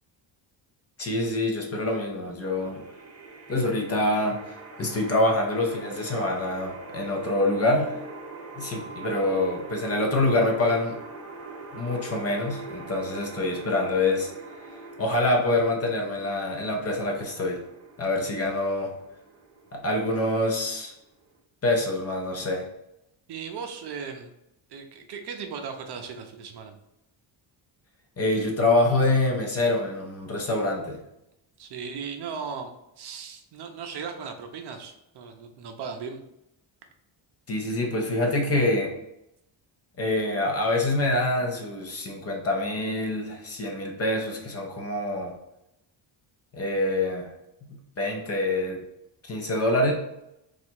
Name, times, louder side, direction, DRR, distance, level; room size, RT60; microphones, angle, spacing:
voice 1, 1.0-2.8 3.5-4.4 4.8-8.0 8.6-11.0 11.7-14.3 15.0-17.6 18.0-18.9 19.7-20.9 21.6-22.6 28.2-31.0 37.5-38.9 40.0-45.3 46.5-47.3 47.7-48.8 49.3-49.9, left 2 dB, 30° left, 1 dB, 0.7 m, -25 dB
sound 1, 2.4-21.4, right 3 dB, 35° right, 1.0 m, -43 dB
voice 2, 23.3-24.3 24.7-26.8 31.6-32.7 33.0-36.2, right 6 dB, 60° right, 5 dB, 0.6 m, -37 dB
4.0 x 2.4 x 4.4 m, 0.84 s
cardioid pair, 175°, 47 cm